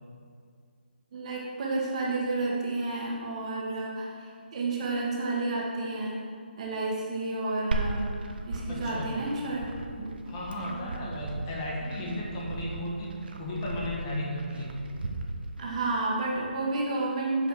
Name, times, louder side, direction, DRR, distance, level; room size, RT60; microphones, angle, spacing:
voice 1, 1.1-6.2 6.6-8.1 8.5-9.6 10.0-10.3 10.7-11.0 15.6-17.5, right 2 dB, 35° right, -3 dB, 1.5 m, -31 dB
Glass, 7.7-15.7, right 2 dB, 60° right, 0.8 m, -36 dB
voice 2, 8.7-9.1 10.3-14.7, left 1 dB, 25° left, -3 dB, 1.3 m, -34 dB
7.7 x 5.2 x 4.7 m, 2.2 s
hypercardioid pair, 160°, 6 cm